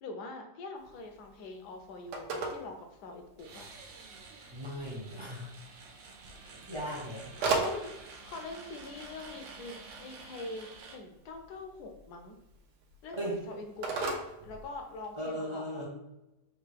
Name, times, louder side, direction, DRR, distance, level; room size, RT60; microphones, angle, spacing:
voice 1, 0.0-3.7 7.4-7.9 8.2-12.4 13.0-13.2 13.5-15.9, left 3 dB, 70° left, 4 dB, 1.1 m, -44 dB
Telephone, 0.8-15.3, right 3 dB, 70° right, 1.2 m, -40 dB
sound 1, 3.4-10.9, right 4 dB, 85° right, 1.5 m, -50 dB
voice 2, 4.5-5.5 6.7-7.3 13.1-13.4 15.2-15.9, equal, 25° right, -5 dB, 0.6 m, -37 dB
3.9 x 2.5 x 4.5 m, 0.95 s
omnidirectional pair, 2.0 m